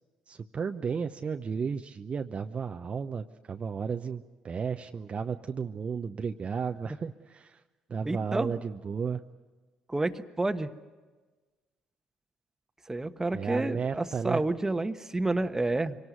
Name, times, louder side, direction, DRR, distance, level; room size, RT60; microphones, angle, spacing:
voice 1, 0.3-7.6 7.9-9.2 13.3-14.4, right 6 dB, 40° right, 6 dB, 0.8 m, -33 dB
voice 2, 8.0-8.5 9.9-10.7 12.9-16.0, right 2 dB, 15° right, 9 dB, 1.2 m, -29 dB
24.5 x 18.0 x 9.3 m, 1.3 s
hypercardioid pair, 55°, 3 cm